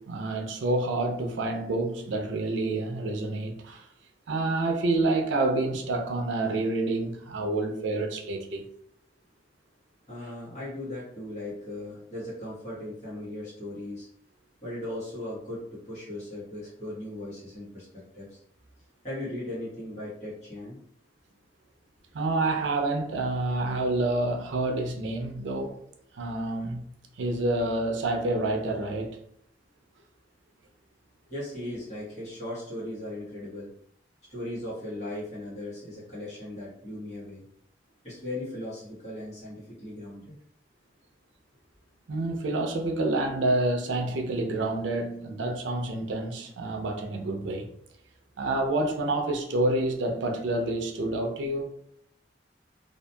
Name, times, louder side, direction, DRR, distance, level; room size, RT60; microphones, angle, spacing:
voice 1, 0.0-3.9 4.3-8.7 22.1-25.8 26.1-26.9 27.2-29.2 42.1-47.7 48.4-51.7, right 2 dB, 90° right, 0.5 m, -28 dB
voice 2, 10.1-14.1 14.6-18.4 19.0-20.8 31.3-33.7 34.3-37.4 38.0-40.3, left 1 dB, 40° left, 1.2 m, -38 dB
2.7 x 2.5 x 2.2 m
head